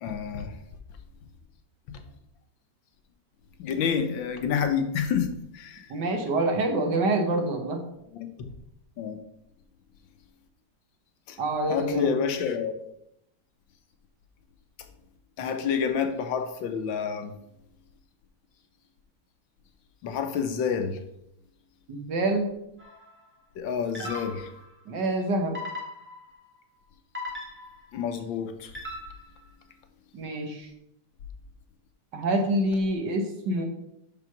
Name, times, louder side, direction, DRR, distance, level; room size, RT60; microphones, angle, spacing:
voice 1, 0.0-0.5 3.6-5.3 5.6-5.8 8.1-8.3 9.0-9.2 11.7-12.7 15.4-17.3 20.0-20.9 23.6-24.5 27.9-28.5, left 7 dB, 75° left, 7 dB, 1.5 m, -28 dB
voice 2, 5.9-7.8 11.4-12.1 21.9-22.5 24.0-24.1 24.9-25.6 30.1-30.7 32.1-33.6, right 2 dB, 65° right, 4 dB, 1.7 m, -26 dB
sound 1, 22.8-23.1 23.9-24.7 25.5-26.4 27.1-28.0 28.7-29.4, left 2 dB, 5° right, 1.2 m, -38 dB
5.8 x 5.5 x 5.8 m, 0.80 s
omnidirectional pair, 2.1 m